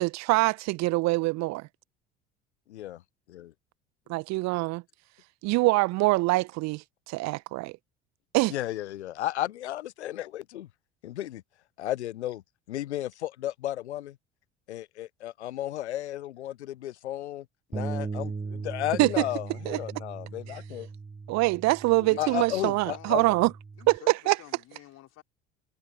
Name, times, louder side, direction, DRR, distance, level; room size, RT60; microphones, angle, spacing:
voice 1, 0.0-1.7 4.1-4.8 5.4-7.7 8.3-8.5 19.0-19.3 19.6-19.8 20.5-20.6 21.3-23.5 23.9-24.4, right 22 dB, 50° right, 1.2 m, -24 dB
voice 2, 2.7-3.0 3.3-3.5 8.5-10.7 11.0-11.4 11.8-12.4 12.7-14.1 14.7-17.4 17.7-20.9 22.2-23.2, left 13 dB, 70° left, 0.9 m, -33 dB
Bass guitar, 17.7-24.0, right 4 dB, 15° right, 2.4 m, -38 dB
voice 3, 22.0-25.2, left 14 dB, 45° left, 4.3 m, -48 dB
figure-of-eight pair, 60°, 35 cm